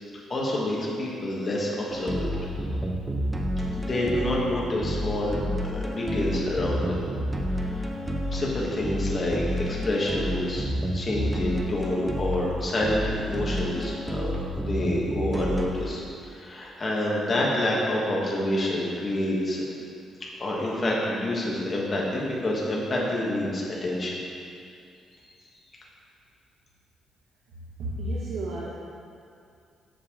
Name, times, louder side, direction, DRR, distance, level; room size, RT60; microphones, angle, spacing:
voice 1, 0.3-2.3 3.7-7.1 7.5-7.9 8.3-10.6 10.9-19.6 20.4-24.1, left 1 dB, 25° left, -4 dB, 1.3 m, -28 dB
sound 1, 1.9-15.7, equal, 10° right, 0.6 m, -30 dB
voice 2, 27.8-28.7, right 1 dB, 80° right, -6 dB, 1.0 m, -31 dB
7.5 x 6.5 x 3.6 m, 2.5 s
cardioid pair, 160°, 0 cm